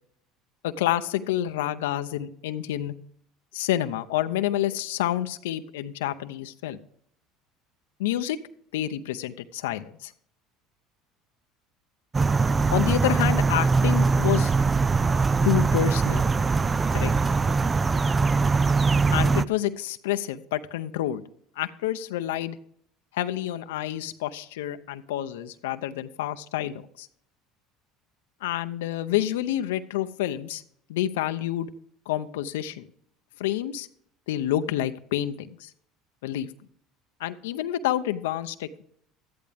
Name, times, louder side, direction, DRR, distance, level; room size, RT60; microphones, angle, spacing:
voice 1, 0.6-2.9 3.5-6.8 8.0-8.4 8.7-10.1 12.7-14.5 15.4-16.2 16.9-17.1 19.1-21.2 21.6-22.6 23.1-27.1 28.4-30.6 30.9-31.7 32.1-32.9 33.4-33.9 34.3-35.7 36.2-36.5 37.2-38.8, left 12 dB, 90° left, 9 dB, 0.6 m, -28 dB
sound 1, 12.1-19.5, right 4 dB, 25° right, 0.4 m, -22 dB
13.0 x 10.5 x 3.5 m, 0.64 s
supercardioid pair, 95°, 0 cm